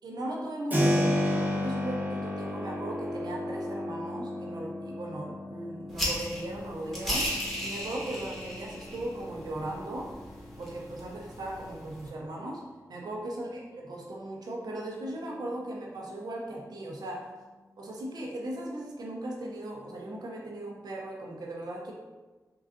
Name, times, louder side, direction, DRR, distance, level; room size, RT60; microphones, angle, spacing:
voice 1, 0.0-7.4 7.6-10.2 10.6-17.4 17.8-21.9, right 1 dB, 90° right, -1 dB, 0.5 m, -38 dB
Keyboard (musical), 0.7-11.4, left 1 dB, 25° right, 0.8 m, -33 dB
sound 1, 5.9-12.1, equal, 5° left, 1.1 m, -36 dB
3.6 x 2.3 x 2.5 m, 1.3 s
cardioid pair, 45°, 7 cm